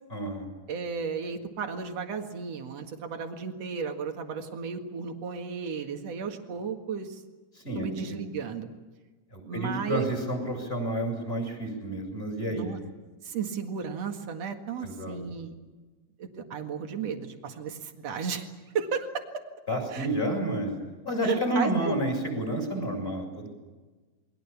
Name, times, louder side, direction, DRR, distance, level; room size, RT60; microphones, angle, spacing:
voice 1, 0.1-0.5 7.5-8.2 9.3-12.7 14.8-15.2 19.7-20.7 21.0-23.5, right 1 dB, 10° left, 2 dB, 6.5 m, -30 dB
voice 2, 0.7-7.2 7.8-8.7 9.4-10.0 12.5-12.8 13.2-15.5 16.2-18.5 18.7-19.1 19.9-20.1 21.2-22.0, right 6 dB, 55° right, 5 dB, 1.9 m, -34 dB
28.5 x 22.5 x 7.2 m, 1.3 s
omnidirectional pair, 5.7 m